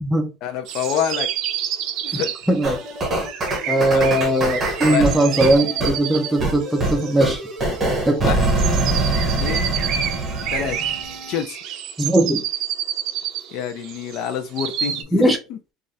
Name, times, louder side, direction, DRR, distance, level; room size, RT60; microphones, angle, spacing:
voice 1, 0.4-1.3 2.0-2.3 3.9-4.1 4.9-5.1 8.2-8.5 9.4-9.7 10.5-10.8 11.3-11.6 13.5-15.6, left 8 dB, 60° left, 0.5 m, -26 dB
sound 1, 0.7-15.0, right 9 dB, 55° right, 0.5 m, -29 dB
voice 2, 2.5-2.8 3.7-7.4 8.1-8.2 12.0-12.4 15.1-15.4, right 1 dB, 5° right, 0.5 m, -19 dB
sound 2, 2.6-11.4, right 2 dB, 25° right, 1.0 m, -24 dB
3.1 x 2.4 x 2.7 m
cardioid pair, 135°, 0 cm